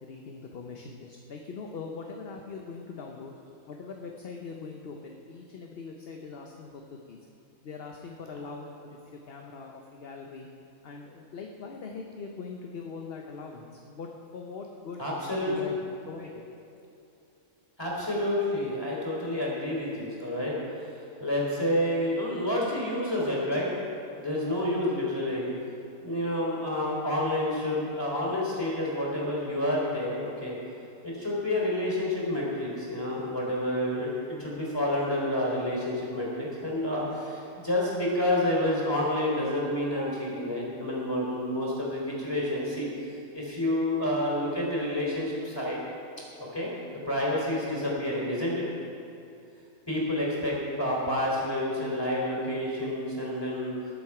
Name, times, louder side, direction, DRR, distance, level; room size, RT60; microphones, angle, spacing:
voice 1, 0.0-3.3 3.7-7.2 7.6-9.0 9.3-10.5 10.8-15.0 15.5-15.7 16.1-16.4, left 4 dB, 50° left, 1 dB, 1.0 m, -41 dB
voice 2, 15.0-15.7 17.8-20.5 20.8-20.9 21.2-23.7 24.2-25.5 26.0-30.6 31.0-42.9 43.3-45.8 46.5-46.7 47.1-48.7 49.9-53.8, left 1 dB, 20° left, -4 dB, 3.6 m, -29 dB
20.0 x 7.6 x 4.9 m, 2.7 s
omnidirectional pair, 1.4 m